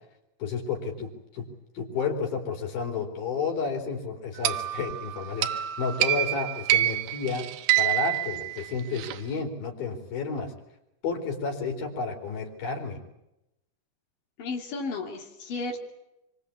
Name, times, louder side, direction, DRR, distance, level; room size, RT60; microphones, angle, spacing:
voice 1, 0.4-1.5 1.8-7.4 7.8-10.5 11.0-13.0, left 5 dB, 85° left, 2 dB, 5.8 m, -31 dB
sound 1, 4.4-9.2, right 14 dB, 90° right, 2.9 m, -27 dB
voice 2, 14.4-15.9, left 3 dB, 70° left, 1 dB, 4.6 m, -33 dB
25.5 x 23.0 x 8.4 m, 0.89 s
omnidirectional pair, 4.1 m